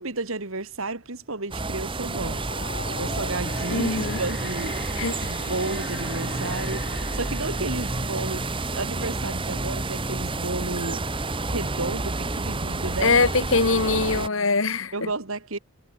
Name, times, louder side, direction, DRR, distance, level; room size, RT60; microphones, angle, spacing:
voice 1, 0.0-13.2 14.9-15.6, right 2 dB, 65° right, 2.2 m, -32 dB
sound 1, 1.5-14.3, right 2 dB, 25° right, 1.4 m, -29 dB
sound 2, 2.3-9.4, left 4 dB, 45° left, 2.1 m, -40 dB
voice 2, 3.7-4.2 5.0-5.3 13.0-15.1, left 3 dB, 60° left, 1.9 m, -23 dB
head